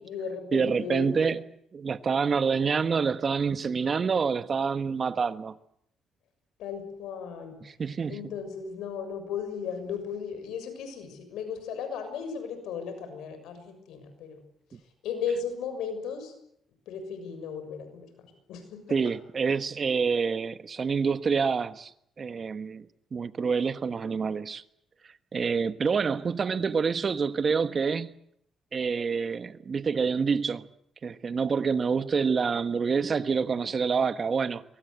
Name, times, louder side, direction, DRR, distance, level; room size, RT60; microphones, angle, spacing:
voice 1, 0.0-1.3 6.6-7.6 8.1-14.4 15.0-16.3 16.9-19.0, left 6 dB, 85° left, 6.7 m, -36 dB
voice 2, 0.5-1.4 1.7-5.6 7.6-8.2 18.9-21.9 22.2-22.9 23.1-24.6 25.3-28.1 28.7-30.7 31.0-34.6, right 5 dB, 40° right, 1.4 m, -27 dB
24.5 x 23.0 x 8.1 m
cardioid pair, 90°, 0 cm